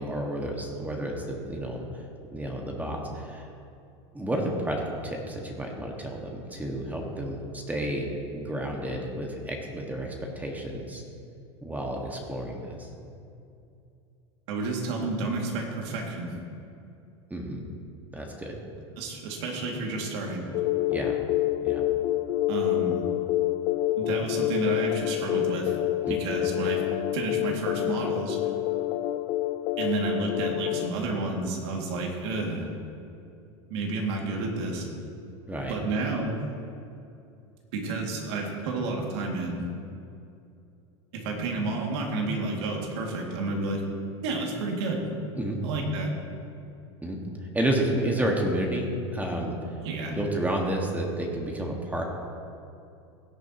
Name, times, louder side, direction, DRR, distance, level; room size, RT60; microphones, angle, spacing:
voice 1, 0.0-2.0 2.3-3.5 4.1-8.1 8.3-11.0 11.6-12.9 17.3-17.6 18.1-18.6 20.9-21.2 21.6-21.8 26.1-26.2 35.5-35.7 45.4-45.6 47.0-47.2 47.5-49.8 50.1-52.0, right 1 dB, 10° right, 0 dB, 1.7 m, -31 dB
voice 2, 14.5-16.3 19.0-20.4 22.5-23.0 24.0-25.8 26.1-26.8 27.1-28.5 29.8-32.7 33.7-34.9 35.7-36.4 37.7-39.6 41.1-43.8 44.2-45.0 45.6-46.1 49.8-50.2, right 3 dB, 70° right, 0 dB, 2.3 m, -30 dB
sound 1, 20.5-30.9, left 14 dB, 60° left, 0.5 m, -27 dB
16.5 x 9.2 x 3.0 m, 2.6 s
hypercardioid pair, 95°, 15 cm